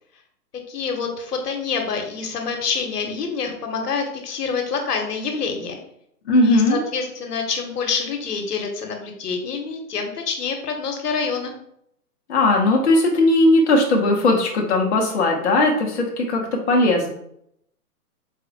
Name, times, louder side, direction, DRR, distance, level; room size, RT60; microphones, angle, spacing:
voice 1, 0.7-5.8 6.4-11.6, left 5 dB, 80° left, 4 dB, 0.9 m, -27 dB
voice 2, 6.3-6.8 12.3-17.1, left 2 dB, 50° left, 0 dB, 0.5 m, -18 dB
3.9 x 2.1 x 2.6 m, 0.73 s
hypercardioid pair, 170°, 47 cm